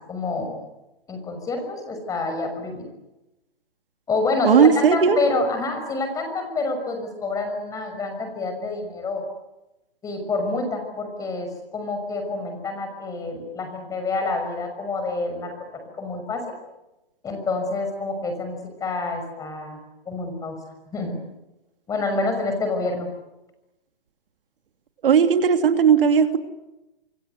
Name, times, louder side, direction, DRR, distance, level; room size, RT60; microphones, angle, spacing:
voice 1, 0.1-0.6 1.1-2.9 4.1-9.2 10.0-16.4 17.2-19.8 20.1-20.6 20.9-21.1 21.9-23.1, left 3 dB, 10° left, 6 dB, 6.0 m, -27 dB
voice 2, 4.4-5.2 25.0-26.4, right 7 dB, 65° right, 7 dB, 2.9 m, -16 dB
27.5 x 25.5 x 8.2 m, 0.97 s
hypercardioid pair, 155°, 29 cm